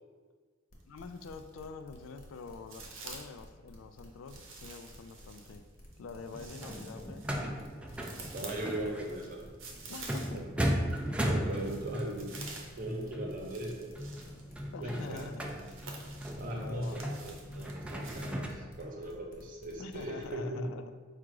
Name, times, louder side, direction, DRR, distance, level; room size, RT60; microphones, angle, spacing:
sound 1, 0.7-20.3, equal, 45° left, 0.9 m, -55 dB
sound 2, 0.8-1.6 2.0-3.4 4.3-10.6 10.9-18.4, right 4 dB, 80° right, 0.8 m, -50 dB
voice 1, 0.9-5.6 6.0-7.5 9.9-10.4 14.7-15.4 16.5-17.0 19.8-20.9, left 4 dB, 80° left, 9 dB, 0.3 m, -46 dB
sound 3, 6.2-18.5, equal, 5° right, 0.3 m, -37 dB
voice 2, 8.3-9.4 10.1-10.4 11.2-12.4 12.8-14.0 14.8-15.3 16.4-20.6, right 1 dB, 45° right, 0 dB, 0.8 m, -39 dB
4.8 x 2.4 x 4.6 m, 1.5 s
head